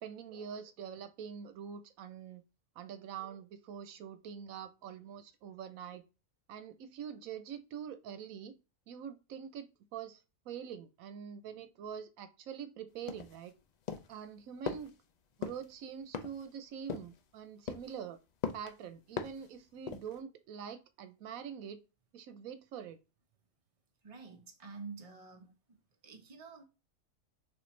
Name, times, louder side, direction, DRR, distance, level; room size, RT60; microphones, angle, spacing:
voice 1, 0.0-2.4 2.8-6.0 6.5-8.5 8.9-9.7 9.9-10.2 10.5-13.5 14.1-14.9 15.4-18.2 18.5-21.8 22.1-23.0, right 8 dB, 90° right, 1.1 m, -45 dB
sound 1, 13.1-13.5 13.9-14.2 14.7-14.9 15.4-15.6 16.1-16.5 16.9-17.2 17.7-18.0 18.4-18.7 19.2-19.5 19.9-20.2, left 6 dB, 75° left, 0.3 m, -39 dB
voice 2, 24.0-26.6, right 4 dB, 30° right, 0.9 m, -49 dB
6.4 x 2.6 x 3.2 m
omnidirectional pair, 1.4 m